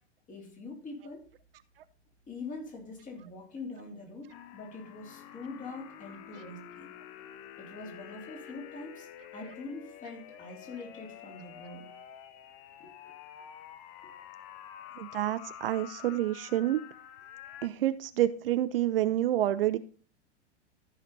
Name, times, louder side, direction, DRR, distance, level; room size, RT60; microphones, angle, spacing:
voice 1, 0.3-1.2 2.3-6.9 7.6-9.1 9.3-11.9 12.8-12.9, left 3 dB, 20° left, 1 dB, 3.6 m, -43 dB
sound 1, 4.3-17.7, left 10 dB, 40° left, 1.0 m, -48 dB
voice 2, 15.0-16.8 17.6-19.8, right 13 dB, 55° right, 13 dB, 0.7 m, -28 dB
14.0 x 5.9 x 4.2 m, 0.40 s
figure-of-eight pair, 95°, 35 cm